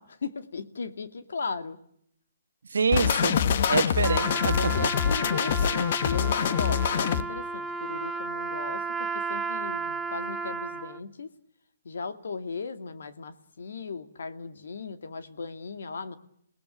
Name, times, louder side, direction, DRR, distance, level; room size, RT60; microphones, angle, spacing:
voice 1, 0.0-1.8 4.6-11.3 11.8-16.2, left 4 dB, 80° left, 2.4 m, -37 dB
voice 2, 2.7-3.4 3.7-4.9, right 5 dB, 90° right, 1.2 m, -26 dB
sound 1, 2.9-7.2, left 8 dB, 50° left, 1.2 m, -25 dB
Trumpet, 4.0-11.0, right 4 dB, 5° right, 1.0 m, -33 dB
28.5 x 18.5 x 7.7 m
hypercardioid pair, 155°, 0 cm